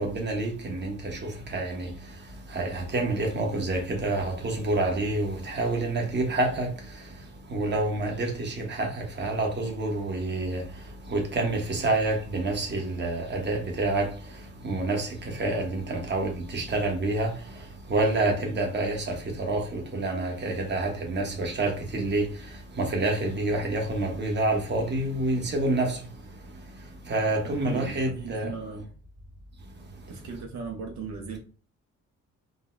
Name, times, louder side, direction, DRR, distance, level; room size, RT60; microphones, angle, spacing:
voice 1, 0.0-1.9 2.5-6.7 7.5-10.6 11.1-14.1 14.6-17.3 17.9-22.5 22.7-26.0 27.1-28.5, right 2 dB, 35° right, 1.1 m, -28 dB
voice 2, 27.4-28.9 30.1-31.4, right 5 dB, 70° right, 0.8 m, -37 dB
3.9 x 2.2 x 2.5 m
cardioid pair, 90°, 30 cm